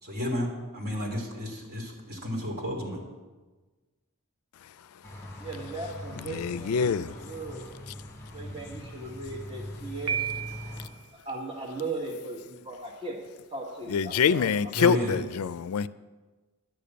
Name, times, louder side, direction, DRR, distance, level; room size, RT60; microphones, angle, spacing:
voice 1, 0.0-3.0 14.7-15.2, left 1 dB, 45° right, 3.0 m, -32 dB
sound 1, 5.0-10.9, left 1 dB, 15° left, 2.0 m, -42 dB
voice 2, 5.4-7.6 8.3-10.3 11.2-13.2 13.5-14.5 14.8-15.1, right 3 dB, 25° right, 1.3 m, -38 dB
voice 3, 6.3-7.2 13.9-15.9, left 6 dB, 70° left, 0.4 m, -25 dB
Piano, 10.1-11.0, right 8 dB, 85° right, 0.9 m, -32 dB
11.0 x 6.8 x 8.7 m
head